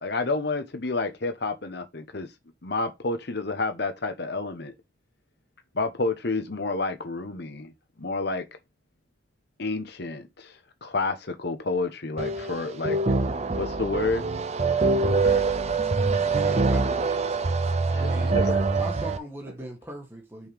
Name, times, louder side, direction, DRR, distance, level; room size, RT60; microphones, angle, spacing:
voice 1, 0.0-2.3 2.6-4.7 5.7-7.7 8.0-8.4 9.6-13.0 13.6-14.3 17.9-18.1 18.3-18.6, left 3 dB, 60° left, 1.1 m, -29 dB
sound 1, 12.2-19.2, right 3 dB, 35° right, 0.5 m, -24 dB
voice 2, 14.7-16.7 17.1-18.7 19.0-19.1 19.5-19.6, right 1 dB, 55° right, 2.4 m, -42 dB
voice 3, 16.2-17.0 18.7-20.5, right 1 dB, 10° right, 1.4 m, -39 dB
5.5 x 5.0 x 3.4 m
head